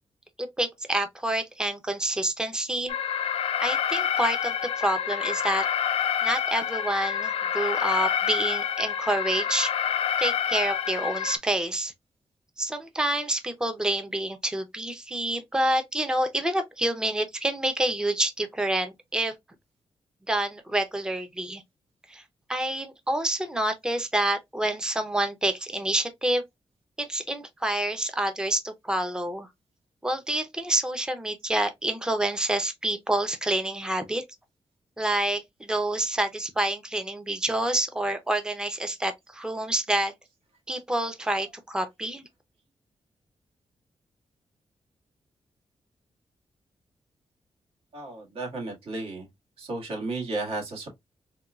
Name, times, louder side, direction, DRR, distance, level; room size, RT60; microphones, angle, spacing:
voice 1, 0.4-2.9 3.6-5.6 6.2-9.7 10.2-11.9 12.6-19.3 20.3-21.6 22.1-22.2 22.5-26.4 27.0-29.5 30.0-34.2 35.0-40.1 40.7-42.3, right 1 dB, 5° right, 0.5 m, -28 dB
Alarm, 2.9-11.4, left 9 dB, 75° left, 0.4 m, -27 dB
voice 2, 47.9-49.3 49.6-50.9, right 2 dB, 70° right, 1.6 m, -33 dB
4.2 x 2.2 x 2.3 m
wide cardioid pair, 130°, 10 cm